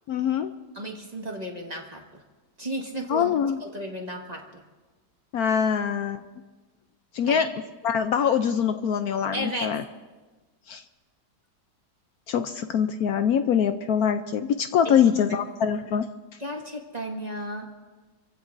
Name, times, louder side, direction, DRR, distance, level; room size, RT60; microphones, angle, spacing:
voice 1, 0.1-0.5 3.1-3.6 5.3-6.2 7.1-7.5 7.8-9.8 10.7-10.8 12.3-16.1, left 8 dB, 70° left, 9 dB, 1.0 m, -23 dB
voice 2, 0.7-2.2 2.6-3.3 3.6-4.6 7.2-7.4 9.3-9.7 15.3-15.4 16.4-17.7, right 1 dB, 25° right, 0 dB, 1.7 m, -34 dB
29.5 x 15.5 x 2.6 m, 1.3 s
omnidirectional pair, 1.8 m